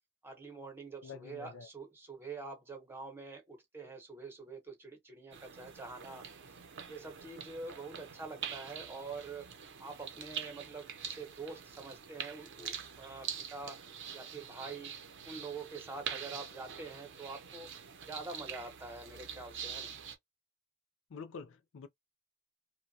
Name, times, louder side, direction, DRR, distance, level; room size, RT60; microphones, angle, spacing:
voice 1, 0.2-6.6 6.9-9.5 9.8-13.8 14.1-15.0 15.3-17.7 18.1-19.9, right 3 dB, 10° right, 0.8 m, -46 dB
voice 2, 1.0-1.7 21.1-21.9, left 5 dB, 60° left, 0.4 m, -47 dB
sound 1, 5.3-20.2, right 7 dB, 55° right, 0.7 m, -45 dB
2.9 x 2.2 x 2.7 m
head